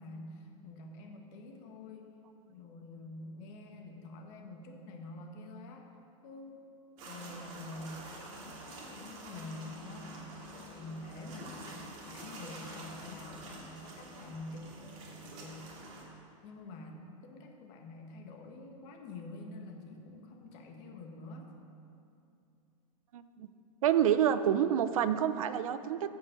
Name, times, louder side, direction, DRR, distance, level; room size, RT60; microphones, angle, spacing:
voice 1, 0.0-2.1 2.5-5.9 6.2-6.6 7.1-10.2 10.5-15.7 16.0-21.5, left 2 dB, 40° left, 2 dB, 1.5 m, -47 dB
sound 1, 7.0-16.0, right 1 dB, 40° right, 2.4 m, -48 dB
voice 2, 23.1-23.5 23.8-26.1, right 9 dB, 80° right, 12 dB, 0.7 m, -28 dB
15.5 x 5.5 x 6.5 m, 2.6 s
supercardioid pair, 155°, 17 cm